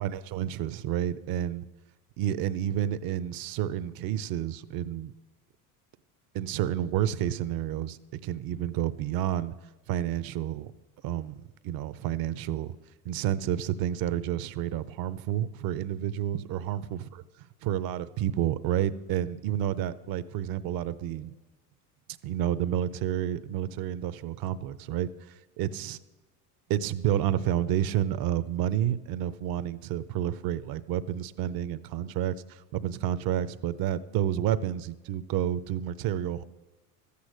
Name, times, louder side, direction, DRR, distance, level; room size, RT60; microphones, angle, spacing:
voice 1, 0.0-1.6 2.2-5.1 6.3-9.5 9.9-10.7 11.0-12.7 13.0-17.0 17.6-21.3 22.2-25.1 25.6-26.0 26.7-36.4, right 11 dB, 50° right, 16 dB, 0.7 m, -30 dB
13.0 x 8.5 x 6.3 m, 1.1 s
supercardioid pair, 90°, 45 cm